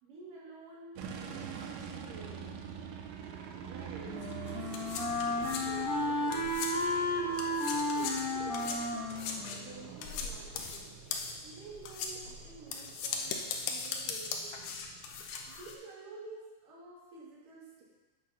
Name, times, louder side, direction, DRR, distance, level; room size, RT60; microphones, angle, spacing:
voice 1, 0.0-2.6 3.5-4.3 5.4-6.6 7.9-11.0 11.4-14.8 15.5-17.8, right 3 dB, 65° right, -5 dB, 3.7 m, -50 dB
sound 1, 1.0-15.8, right 7 dB, 90° right, 2.7 m, -46 dB
Wind instrument woodwind instrument, 3.6-10.5, left 1 dB, 40° left, 1.2 m, -34 dB
sound 2, 4.2-7.0 7.3-15.7, left 5 dB, 75° left, 2.3 m, -39 dB
8.9 x 6.1 x 5.6 m, 1.2 s
omnidirectional pair, 4.3 m